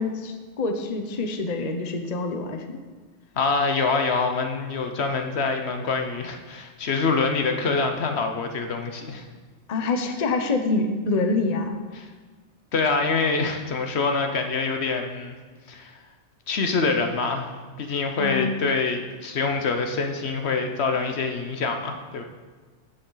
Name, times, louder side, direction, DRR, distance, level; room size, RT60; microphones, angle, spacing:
voice 1, 0.0-2.8 9.7-11.8 18.2-18.5, left 3 dB, 40° left, 5 dB, 0.8 m, -26 dB
voice 2, 3.4-9.3 11.9-12.1 12.7-15.3 15.7-16.0 16.5-17.5 17.8-22.2, left 4 dB, 65° left, 5 dB, 1.1 m, -25 dB
15.0 x 6.6 x 3.9 m, 1.4 s
omnidirectional pair, 1.2 m